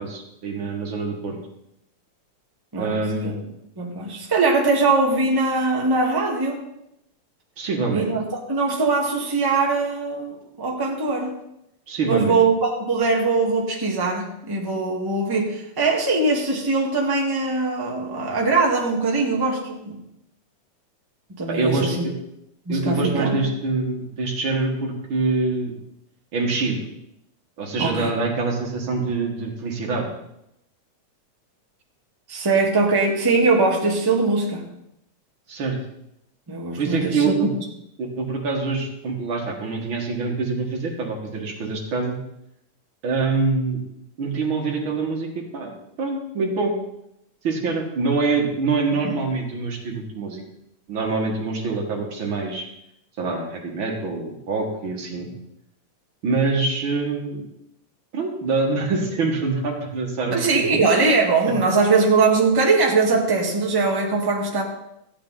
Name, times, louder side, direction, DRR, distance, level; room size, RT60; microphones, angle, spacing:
voice 1, 0.0-1.4 2.8-3.5 7.6-8.1 11.9-12.4 21.5-22.1 22.7-25.7 26.3-26.9 27.6-30.2 35.5-35.8 36.8-37.5 38.0-42.2 43.0-43.8 44.2-46.7 47.4-50.4 50.9-52.6 53.2-55.3 56.2-57.4 58.1-60.8, right 3 dB, 45° right, 0 dB, 2.3 m, -25 dB
voice 2, 2.7-3.4 3.8-6.6 7.9-8.2 8.5-11.4 12.1-20.0 21.3-22.0 22.6-23.4 27.8-28.1 32.3-34.7 36.5-37.5 49.0-49.2 60.3-64.6, right 3 dB, 10° right, -1 dB, 1.0 m, -21 dB
14.5 x 8.5 x 4.1 m, 0.82 s
omnidirectional pair, 3.4 m